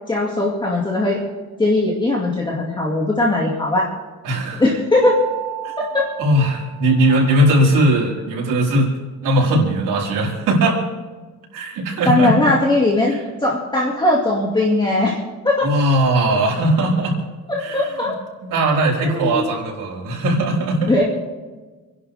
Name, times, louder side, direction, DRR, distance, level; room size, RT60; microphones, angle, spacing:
voice 1, 0.1-1.2 1.6-3.9 4.5-5.2 5.8-6.1 12.1-15.2 15.4-15.7 17.5-18.1 19.0-19.5 20.9-21.0, left 2 dB, 15° left, -3 dB, 2.1 m, -19 dB
voice 2, 4.2-4.6 5.6-5.7 6.2-8.9 9.2-10.8 11.5-12.5 13.1-13.2 15.6-17.2 17.6-18.1 18.4-20.9, right 1 dB, 80° right, -3 dB, 4.7 m, -19 dB
Mallet percussion, 5.0-7.5, right 11 dB, 10° right, 1.6 m, -33 dB
28.5 x 11.0 x 3.5 m, 1.3 s
cardioid pair, 170°, 32 cm